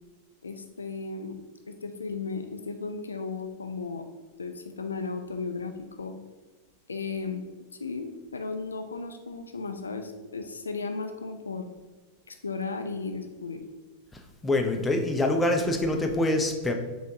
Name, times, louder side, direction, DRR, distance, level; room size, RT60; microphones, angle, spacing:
voice 1, 0.4-1.4 1.7-4.1 4.4-6.2 6.9-7.4 7.8-11.7 12.3-13.6, left 4 dB, 75° left, 7 dB, 0.3 m, -35 dB
voice 2, 14.4-16.7, left 1 dB, 10° left, 4 dB, 0.5 m, -25 dB
4.2 x 3.5 x 2.9 m, 1.3 s
figure-of-eight pair, 90°, 0 cm